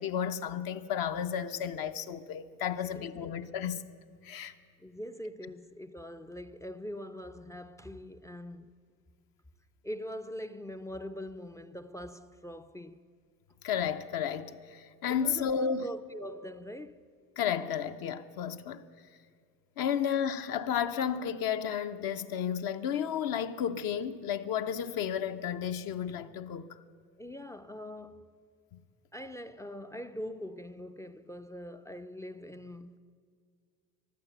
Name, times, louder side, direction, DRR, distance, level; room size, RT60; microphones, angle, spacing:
voice 1, 0.0-3.8 4.2-4.5 13.6-15.9 17.4-18.9 19.8-26.7, left 8 dB, 65° left, 0.8 m, -32 dB
voice 2, 2.7-3.3 4.8-8.7 9.8-13.0 15.1-17.1 27.2-28.4 29.1-33.0, equal, 10° left, 0.3 m, -43 dB
15.0 x 11.5 x 8.0 m
cardioid pair, 105°, 37 cm